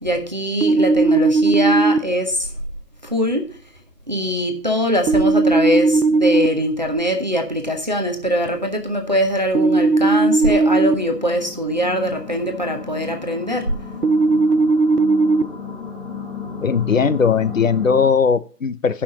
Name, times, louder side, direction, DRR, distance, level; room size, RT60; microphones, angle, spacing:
voice 1, 0.0-2.5 3.0-3.5 4.1-13.7, equal, 30° right, 0.7 m, -22 dB
sound 1, 0.6-2.0 5.1-6.5 9.6-10.9 14.0-15.4, right 3 dB, 75° right, 0.8 m, -16 dB
sound 2, 10.8-18.1, left 5 dB, 40° left, 1.5 m, -34 dB
voice 2, 16.6-19.0, left 6 dB, 55° left, 0.6 m, -18 dB
8.1 x 5.6 x 6.7 m
figure-of-eight pair, 165°, 47 cm